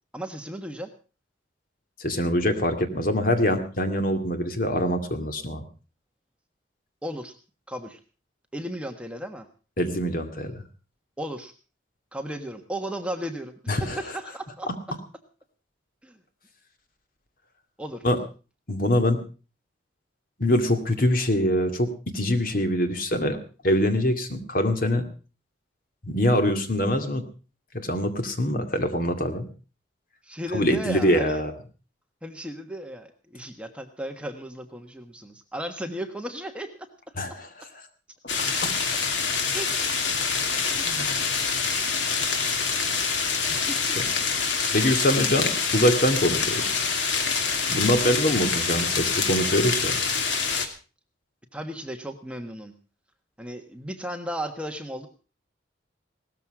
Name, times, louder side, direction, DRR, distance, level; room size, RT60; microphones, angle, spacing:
voice 1, 0.1-0.9 7.0-7.3 7.7-8.0 8.5-9.5 11.2-11.5 12.1-14.7 16.0-16.2 17.8-18.0 30.2-31.4 32.2-36.9 39.5-39.7 40.5-41.1 43.5-44.0 47.8-48.1 51.5-52.7 53.4-55.1, equal, 5° right, 5 dB, 1.4 m, -35 dB
voice 2, 2.0-5.6 9.8-10.6 13.7-14.0 18.0-18.2 18.7-19.2 20.4-23.4 23.6-25.0 26.0-27.2 27.7-29.5 30.5-31.5 37.2-37.5 40.6-41.2 44.0-44.1 44.7-46.8 47.7-50.0, left 1 dB, 50° left, 7 dB, 2.4 m, -24 dB
sound 1, 38.3-50.7, left 5 dB, 75° left, 2.6 m, -26 dB
18.0 x 13.5 x 4.9 m, 0.36 s
head